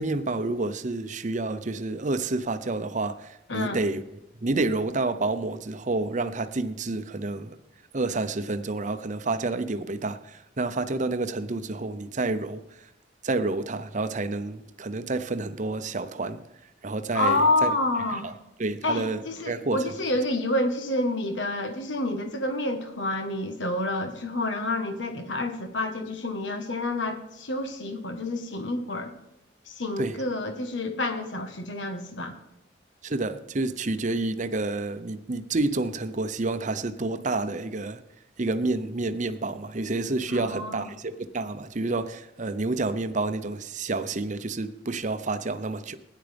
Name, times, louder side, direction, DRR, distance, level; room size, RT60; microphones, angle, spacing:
voice 1, 0.0-4.0 4.4-7.6 7.9-12.7 13.2-16.4 16.8-17.7 18.1-18.3 18.6-20.0 30.0-30.2 33.0-38.0 38.4-46.0, right 2 dB, 40° right, 0.8 m, -29 dB
voice 2, 3.5-3.8 17.1-18.3 18.8-29.1 29.7-32.4 40.3-40.9, left 2 dB, 80° left, 1.3 m, -28 dB
16.5 x 10.0 x 3.5 m
head